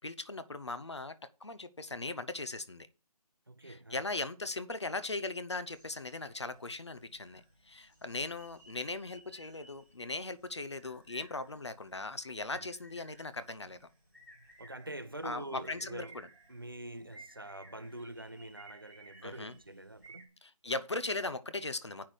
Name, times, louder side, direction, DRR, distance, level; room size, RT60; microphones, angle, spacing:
voice 1, 0.0-2.9 3.6-13.8 15.2-16.1 19.2-19.5 20.4-22.1, left 2 dB, 45° left, 0.7 m, -39 dB
voice 2, 3.5-4.0 12.5-12.7 14.6-20.4, right 1 dB, 35° right, 0.5 m, -45 dB
sound 1, 5.7-20.2, right 2 dB, ahead, 0.8 m, -58 dB
8.3 x 5.8 x 6.3 m
figure-of-eight pair, 180°, 20 cm